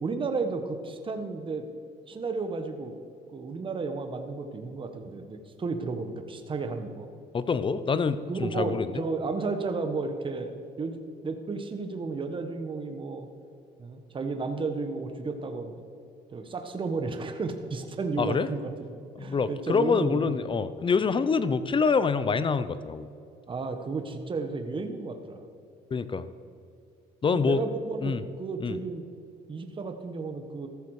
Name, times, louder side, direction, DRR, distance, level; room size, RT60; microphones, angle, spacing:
voice 1, 0.0-1.6 2.1-2.9 3.3-7.1 7.6-7.7 8.3-10.5 10.8-11.0 11.2-13.3 13.8-15.8 16.3-18.7 19.2-20.3 23.5-25.5 26.1-26.2 27.3-29.0 29.5-30.7, right 4 dB, 30° right, 6 dB, 1.4 m, -33 dB
voice 2, 7.3-8.9 18.2-18.5 19.2-23.1 25.9-26.3 27.2-27.6 28.0-28.2 28.6-28.8, left 5 dB, 30° left, 14 dB, 0.7 m, -26 dB
14.5 x 14.0 x 4.9 m, 2.6 s
cardioid pair, 110°, 17 cm